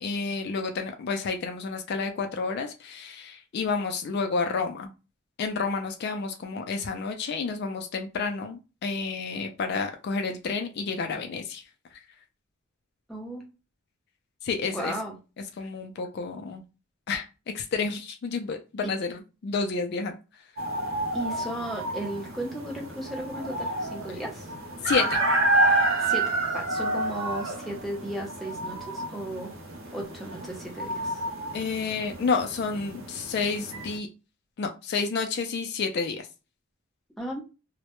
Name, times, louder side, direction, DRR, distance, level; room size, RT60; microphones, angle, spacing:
voice 1, 0.0-4.9 5.4-11.6 14.4-14.9 15.6-16.6 17.1-17.2 17.5-20.2 24.8-25.2 31.5-34.1 34.6-36.3, left 4 dB, 50° left, 5 dB, 0.3 m, -30 dB
voice 2, 13.1-13.4 14.6-15.1 18.8-18.9 21.1-24.5 26.0-29.5 29.9-31.2 37.2-37.4, right 1 dB, ahead, -2 dB, 0.6 m, -35 dB
sound 1, 20.6-34.0, right 2 dB, 65° right, 0.5 m, -29 dB
2.1 x 2.0 x 2.9 m, 0.30 s
head